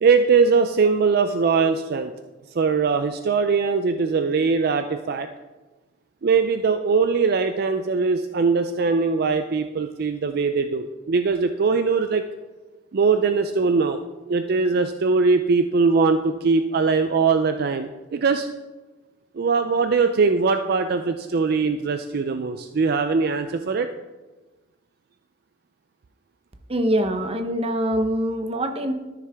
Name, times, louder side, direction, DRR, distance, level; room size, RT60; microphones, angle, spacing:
voice 1, 0.0-2.1 2.5-5.3 6.2-12.2 12.9-14.0 14.3-18.5 19.3-23.9, right 4 dB, 55° right, 8 dB, 0.4 m, -21 dB
voice 2, 26.7-28.9, right 1 dB, 30° right, 7 dB, 0.8 m, -24 dB
13.0 x 6.6 x 3.5 m, 1.2 s
head